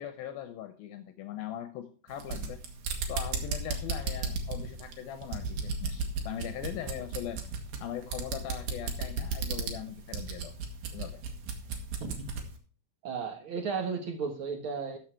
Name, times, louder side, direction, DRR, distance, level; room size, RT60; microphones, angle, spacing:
voice 1, 0.0-2.6 3.1-7.4 7.8-10.5 10.9-11.2, left 10 dB, 75° left, 8 dB, 2.5 m, -40 dB
sound 1, 2.1-12.5, right 4 dB, 65° right, 3.1 m, -35 dB
voice 2, 13.0-15.0, right 5 dB, 90° right, 4 dB, 1.1 m, -34 dB
13.0 x 6.7 x 4.5 m, 0.38 s
omnidirectional pair, 4.6 m